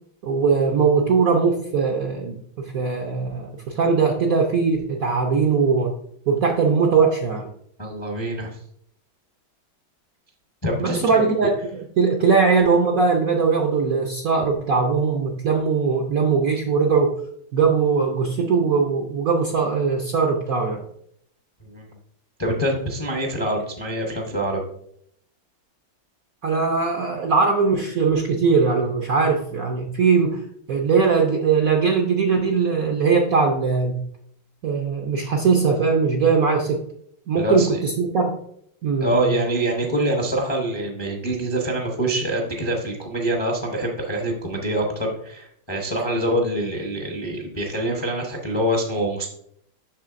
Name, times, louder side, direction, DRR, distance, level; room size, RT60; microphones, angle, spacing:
voice 1, 0.2-2.4 2.7-5.9 6.3-7.5 10.8-11.5 12.0-17.1 17.5-20.8 26.4-30.4 30.7-34.0 34.6-36.8 37.3-38.4 38.8-39.3, right 5 dB, 65° right, 1 dB, 0.9 m, -20 dB
voice 2, 7.8-8.5 10.6-11.5 21.6-21.9 22.4-24.6 37.4-37.8 39.0-49.3, right 1 dB, 25° left, -1 dB, 0.6 m, -25 dB
7.3 x 6.3 x 2.5 m, 0.71 s
omnidirectional pair, 2.3 m